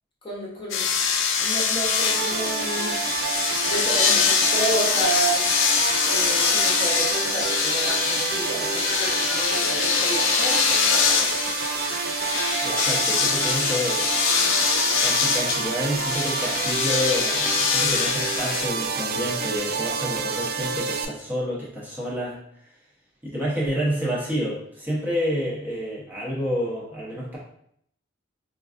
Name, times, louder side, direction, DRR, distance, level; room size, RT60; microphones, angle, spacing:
voice 1, 0.2-0.9 1.4-2.9 3.7-5.5 6.1-11.4 12.6-12.8, right 1 dB, 25° left, -5 dB, 0.8 m, -31 dB
sound 1, 0.7-18.7, left 6 dB, 70° left, 0.4 m, -24 dB
sound 2, 1.9-21.1, right 5 dB, 50° right, 0.3 m, -28 dB
voice 2, 12.6-14.1 15.0-22.4 23.2-27.4, equal, 10° right, -7 dB, 0.7 m, -29 dB
4.5 x 2.5 x 2.4 m, 0.70 s
head